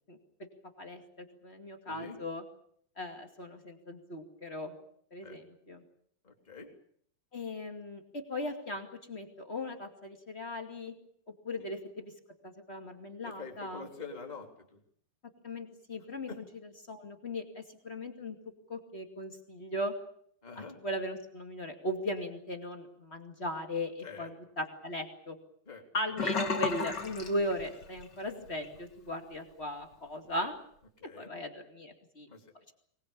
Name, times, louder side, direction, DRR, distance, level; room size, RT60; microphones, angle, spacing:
voice 1, 0.1-0.5 0.8-2.4 3.0-4.7 5.1-5.8 7.3-10.9 11.4-12.1 12.4-13.8 15.4-16.3 16.9-18.4 18.7-19.9 20.5-25.4 25.9-30.5 31.2-32.3, left 1 dB, 35° left, 5 dB, 1.0 m, -38 dB
voice 2, 1.8-2.2 5.2-5.4 6.2-6.7 11.6-11.7 13.2-14.8 16.3-16.4 20.4-20.8 24.0-24.3 25.6-25.8 31.0-31.3 32.3-32.7, left 4 dB, 10° left, 3 dB, 2.5 m, -46 dB
Sink (filling or washing), 26.2-28.1 28.5-28.7 29.1-29.2, left 4 dB, 70° left, 1.0 m, -33 dB
24.0 x 20.0 x 8.6 m, 0.64 s
omnidirectional pair, 5.3 m